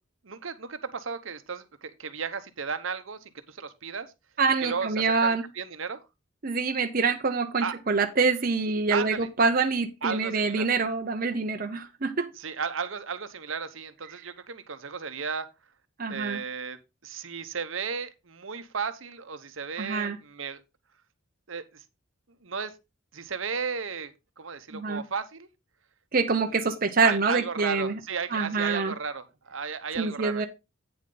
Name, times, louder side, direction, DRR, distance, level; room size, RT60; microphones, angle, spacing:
voice 1, 0.2-4.1 4.6-6.0 7.6-7.8 8.9-9.3 10.0-10.7 12.4-15.5 16.1-16.8 17.0-20.6 21.5-21.8 22.4-22.7 23.1-25.5 27.0-30.5, right 5 dB, 70° right, 1.0 m, -34 dB
voice 2, 4.4-5.4 6.4-12.3 16.0-16.4 19.8-20.2 24.7-25.0 26.1-28.0 28.3-28.9 30.0-30.5, right 4 dB, 45° right, 0.8 m, -26 dB
8.9 x 7.2 x 3.9 m
head